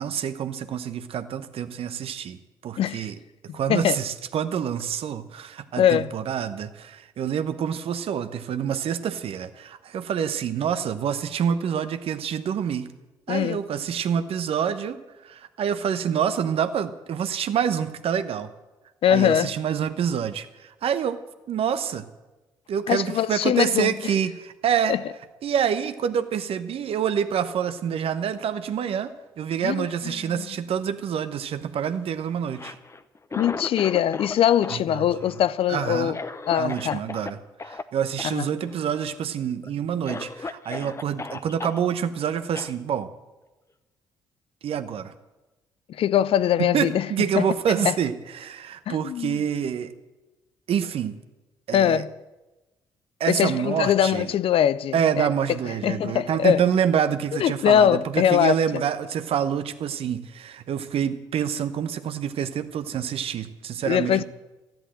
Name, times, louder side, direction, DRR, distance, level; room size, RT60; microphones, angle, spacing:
voice 1, 0.0-2.4 2.6-3.2 3.5-12.9 13.3-18.5 19.1-21.2 21.5-22.1 22.7-24.9 25.4-32.8 34.7-35.0 35.7-36.2 36.5-37.4 37.6-43.1 44.6-45.1 46.6-49.9 50.7-51.2 51.7-52.0 53.2-54.3 54.9-64.2, right 8 dB, 60° right, 1.0 m, -27 dB
voice 2, 2.8-3.1 3.5-4.0 5.8-6.1 13.3-13.6 19.0-19.6 22.9-23.9 24.9-25.0 29.6-30.6 33.3-36.2 36.5-37.0 38.2-38.5 45.9-47.1 47.3-47.9 48.9-49.4 51.7-52.1 53.3-55.3 55.8-56.6 57.4-58.6 63.9-64.2, left 10 dB, 55° left, 0.5 m, -22 dB
Cough, 32.4-34.4 34.6-37.3 37.6-37.8 38.2-38.3 38.6-39.2 39.6-39.7 40.0-41.8 42.5-42.7, left 3 dB, 25° left, 0.9 m, -36 dB
13.0 x 10.5 x 7.7 m
hypercardioid pair, 50°, 11 cm